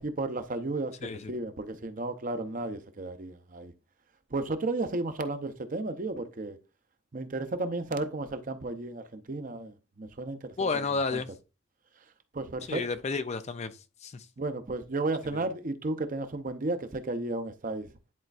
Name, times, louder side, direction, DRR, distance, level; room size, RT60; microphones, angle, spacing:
voice 1, 0.0-0.9 1.3-3.7 4.3-6.6 7.1-10.8 11.1-11.2 12.3-12.8 14.4-17.9, right 2 dB, 40° right, 0.7 m, -33 dB
voice 2, 1.0-1.3 10.6-11.3 12.7-14.3, left 4 dB, 35° left, 0.4 m, -31 dB
10.5 x 4.3 x 2.4 m
head